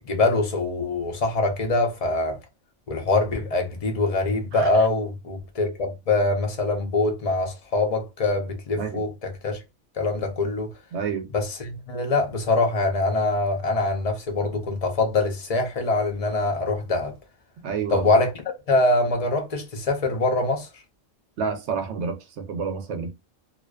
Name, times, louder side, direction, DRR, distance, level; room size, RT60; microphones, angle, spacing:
voice 1, 0.0-2.4 2.9-9.6 10.0-10.7 11.3-17.1 17.9-18.3 18.7-20.7, left 2 dB, 40° left, 0.5 m, -24 dB
voice 2, 10.9-11.3 17.6-18.1 21.4-23.1, right 5 dB, 70° right, 0.9 m, -29 dB
2.5 x 2.2 x 2.2 m
omnidirectional pair, 1.3 m